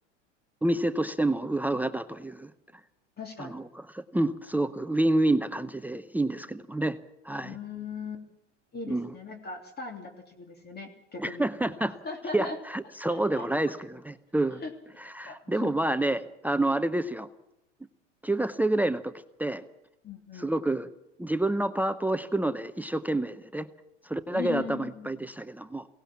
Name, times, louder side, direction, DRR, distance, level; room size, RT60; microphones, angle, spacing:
voice 1, 0.6-2.5 3.4-7.0 7.2-7.6 8.9-9.1 11.2-11.9 12.3-14.6 15.0-17.3 18.2-19.1 19.4-19.6 20.3-20.9 21.2-23.7 24.0-25.9, right 1 dB, 5° right, 14 dB, 0.7 m, -28 dB
voice 2, 3.2-3.5 7.4-8.2 8.7-11.5 12.0-12.6 13.1-13.7 14.6-14.7 15.2-15.7 20.0-20.5 24.3-25.4, left 5 dB, 25° left, 4 dB, 3.1 m, -39 dB
22.5 x 18.0 x 7.2 m, 0.87 s
hypercardioid pair, 95°, 36 cm